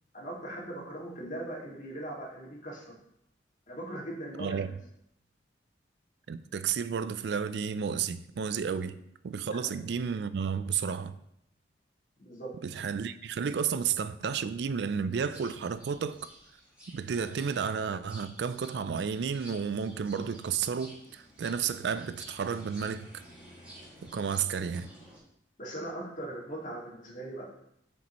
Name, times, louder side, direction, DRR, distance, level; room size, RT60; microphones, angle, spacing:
voice 1, 0.1-2.9 3.7-4.7 8.8-8.9 9.3-9.7 12.2-12.5 25.6-27.4, right 1 dB, 45° left, 2.0 m, -40 dB
voice 2, 6.3-9.0 9.2-11.1 12.6-16.2 16.9-23.1 24.1-24.9, right 6 dB, 65° right, 0.3 m, -32 dB
sound 1, 15.3-25.2, equal, 10° right, 2.1 m, -52 dB
8.6 x 5.1 x 3.0 m
head